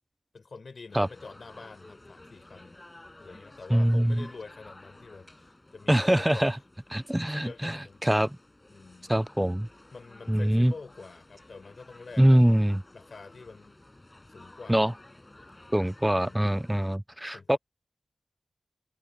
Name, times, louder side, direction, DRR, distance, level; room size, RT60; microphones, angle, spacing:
voice 1, 0.3-2.8 3.2-6.5 7.2-8.0 8.7-9.1 9.9-12.6 12.9-13.8 14.3-14.9 16.1-16.4 17.3-17.6, left 4 dB, 75° left, 5.9 m, -46 dB
sound 1, 0.9-17.0, left 1 dB, 30° left, 5.4 m, -53 dB
voice 2, 3.7-4.3 5.9-6.6 6.9-8.4 9.1-9.7 10.3-10.7 12.2-12.8 14.7-14.9 15.7-17.6, right 1 dB, 10° right, 0.4 m, -23 dB
cardioid pair, 45°, 0 cm